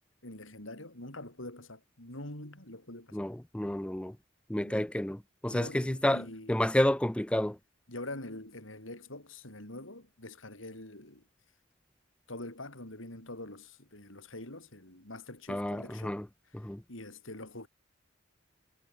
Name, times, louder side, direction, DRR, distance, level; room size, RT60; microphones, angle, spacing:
voice 1, 0.2-3.2 4.6-4.9 5.5-6.6 7.9-11.2 12.3-16.2 16.9-17.7, left 1 dB, 85° left, 7.8 m, -45 dB
voice 2, 3.1-4.2 4.5-7.6 15.5-16.3 16.5-16.8, left 1 dB, 5° left, 0.4 m, -30 dB
head